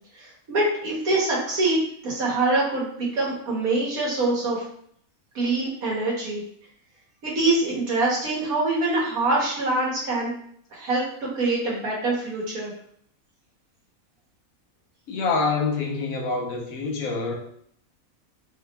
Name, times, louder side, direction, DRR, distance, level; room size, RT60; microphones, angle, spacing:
voice 1, 0.1-4.7 5.4-6.4 7.2-10.3 10.7-11.0 11.4-12.7, right 2 dB, 75° right, -5 dB, 1.8 m, -24 dB
voice 2, 15.1-17.3, left 4 dB, 75° left, 1 dB, 1.2 m, -26 dB
3.4 x 3.1 x 3.4 m, 0.65 s
omnidirectional pair, 1.5 m